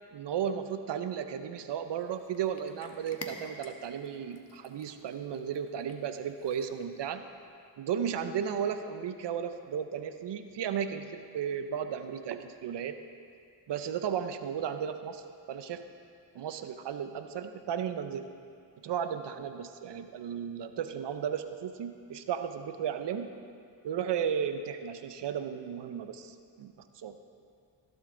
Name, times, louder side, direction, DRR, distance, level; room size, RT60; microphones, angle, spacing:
voice 1, 0.1-7.2 7.8-13.0 13.7-15.2 15.5-15.8 16.3-18.3 18.8-23.3 23.8-27.2, right 8 dB, 75° right, 9 dB, 0.7 m, -34 dB
Cat, 1.9-7.1, left 2 dB, 35° left, 1.4 m, -50 dB
17.5 x 8.1 x 3.8 m, 2.3 s
cardioid pair, 50°, 43 cm